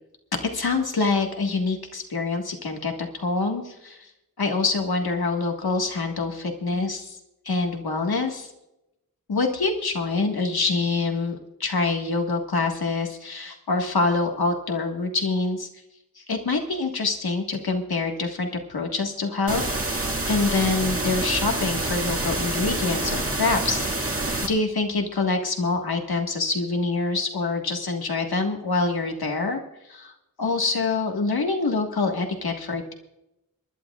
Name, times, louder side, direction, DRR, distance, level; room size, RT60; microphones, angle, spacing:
voice 1, 0.3-4.1 4.4-7.2 7.4-8.5 9.3-15.7 16.1-30.1 30.4-32.9, left 3 dB, 85° left, 2 dB, 1.7 m, -26 dB
sound 1, 19.5-24.5, right 2 dB, 40° right, 2.0 m, -27 dB
26.0 x 11.5 x 2.4 m, 0.89 s
wide cardioid pair, 70°, 36 cm